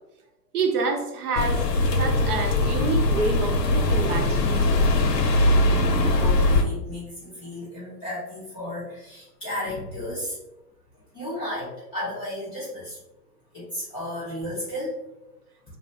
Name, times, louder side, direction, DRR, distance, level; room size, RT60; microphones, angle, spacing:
voice 1, 0.5-1.6 1.9-4.8, right 4 dB, 65° right, 2 dB, 0.7 m, -28 dB
sound 1, 1.4-6.6, left 2 dB, 75° left, 0.7 m, -21 dB
voice 2, 5.6-10.3 11.1-13.0 13.5-14.9, left 1 dB, 10° left, -13 dB, 0.5 m, -33 dB
2.9 x 2.0 x 2.8 m, 0.91 s
hypercardioid pair, 140°, 49 cm